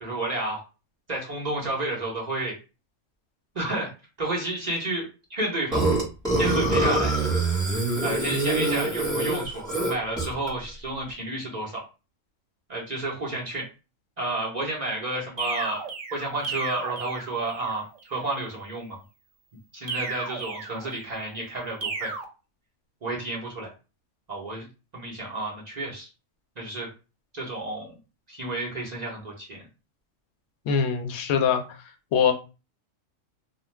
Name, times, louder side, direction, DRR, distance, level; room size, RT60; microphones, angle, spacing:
voice 1, 0.0-0.6 1.1-2.6 3.5-3.9 4.2-5.9 6.4-7.2 8.0-11.8 12.7-13.7 14.2-15.8 16.1-19.0 19.7-22.1 23.0-23.7 24.3-24.7 24.9-26.1 26.6-26.9 27.3-28.0 28.3-29.7, right 2 dB, 40° right, -4 dB, 0.7 m, -31 dB
Burping eructation, 5.7-10.5, right 2 dB, 5° left, 0.9 m, -24 dB
sound 1, 15.4-17.8 19.9-21.2 21.8-22.2, right 4 dB, 80° right, 1.0 m, -34 dB
voice 2, 30.7-31.8 32.1-32.3, left 7 dB, 65° left, 4 dB, 0.8 m, -23 dB
2.4 x 2.2 x 3.1 m, 0.31 s
omnidirectional pair, 1.4 m